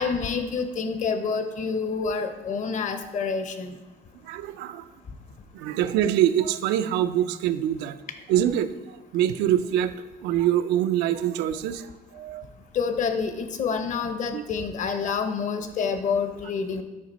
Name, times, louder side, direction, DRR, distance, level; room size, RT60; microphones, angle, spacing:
voice 1, 0.0-3.7 12.7-16.8, left 5 dB, 50° left, 8 dB, 0.8 m, -28 dB
voice 2, 4.2-4.9 5.5-8.0 8.3-9.9 10.2-12.4 14.3-14.4, right 11 dB, 90° right, 11 dB, 0.5 m, -25 dB
8.7 x 5.0 x 4.1 m, 1.2 s
cardioid pair, 110°, 17 cm